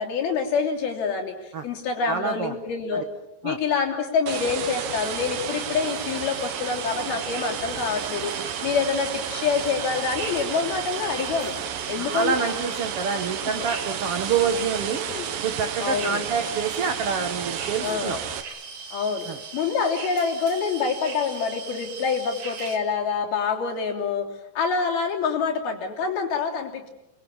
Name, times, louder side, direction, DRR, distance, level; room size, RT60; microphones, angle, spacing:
voice 1, 0.0-3.1 3.4-8.3 8.6-11.5 11.9-12.5 13.6-13.7 15.1-15.3 15.8-16.2 17.8-18.2 18.9-19.3 19.5-24.3 24.5-26.9, left 5 dB, 65° left, 1 dB, 5.0 m, -26 dB
voice 2, 2.1-2.6 2.9-3.0 3.4-3.6 12.0-15.1 15.4-18.2 19.3-19.4, right 6 dB, 90° right, 7 dB, 1.2 m, -27 dB
sound 1, 4.3-18.4, right 9 dB, 65° right, 2.8 m, -32 dB
sound 2, 4.9-22.8, right 5 dB, 45° right, 3.1 m, -39 dB
29.0 x 22.0 x 7.3 m, 0.90 s
omnidirectional pair, 4.8 m